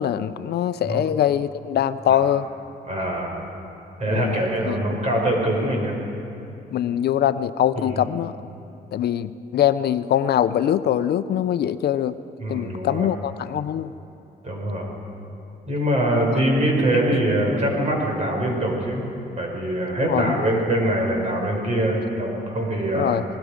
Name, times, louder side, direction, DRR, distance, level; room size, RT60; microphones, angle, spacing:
voice 1, 0.0-2.5 4.1-4.8 6.7-8.4 8.9-12.2 12.5-13.9 20.1-20.5 22.9-23.2, left 10 dB, 70° left, 12 dB, 0.6 m, -23 dB
voice 2, 2.9-3.4 4.0-5.9 7.8-8.0 12.4-13.1 14.4-14.9 15.7-19.1 19.4-23.2, right 1 dB, 40° right, 0 dB, 5.5 m, -23 dB
28.0 x 20.5 x 5.1 m, 2.8 s
cardioid pair, 105°, 17 cm